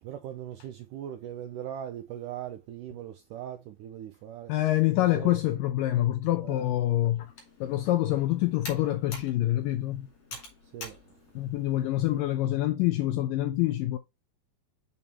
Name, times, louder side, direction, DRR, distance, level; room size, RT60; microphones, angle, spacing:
voice 1, 0.0-4.5 5.0-5.6 6.4-6.7 10.7-11.0, right 10 dB, 85° right, 1.9 m, -40 dB
voice 2, 4.5-7.3 7.6-10.1 11.4-14.0, left 15 dB, 80° left, 2.0 m, -26 dB
Computer keyboard, 7.2-12.3, left 2 dB, 45° left, 3.5 m, -47 dB
6.9 x 5.5 x 3.1 m
omnidirectional pair, 4.5 m